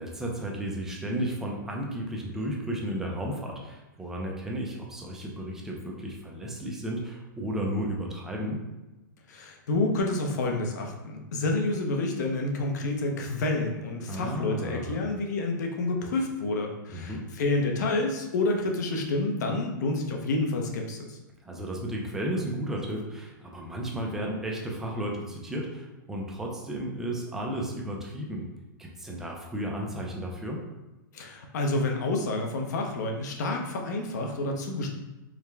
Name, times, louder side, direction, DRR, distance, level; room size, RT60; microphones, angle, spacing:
voice 1, 0.0-8.6 14.1-15.1 16.9-17.2 21.4-28.4 28.8-30.6, right 1 dB, 5° right, -1 dB, 0.4 m, -33 dB
voice 2, 9.3-21.2 31.1-34.9, left 2 dB, 55° left, 2 dB, 0.8 m, -29 dB
4.7 x 2.2 x 3.4 m, 1.0 s
hypercardioid pair, 165°, 11 cm